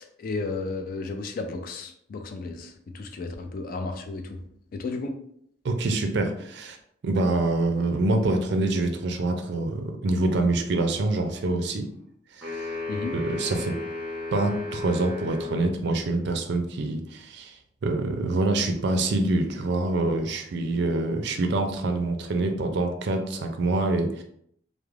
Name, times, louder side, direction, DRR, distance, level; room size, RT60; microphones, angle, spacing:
voice 1, 0.0-4.4 4.7-5.1 12.9-13.1, left 3 dB, 50° left, 6 dB, 0.3 m, -33 dB
voice 2, 5.6-6.8 7.0-11.9 12.4-12.7 13.1-13.7 14.3-17.5 17.8-24.2, right 2 dB, 60° right, 5 dB, 0.4 m, -26 dB
sound 1, 12.4-15.7, left 3 dB, 5° right, 0.8 m, -34 dB
2.4 x 2.0 x 3.1 m, 0.68 s
head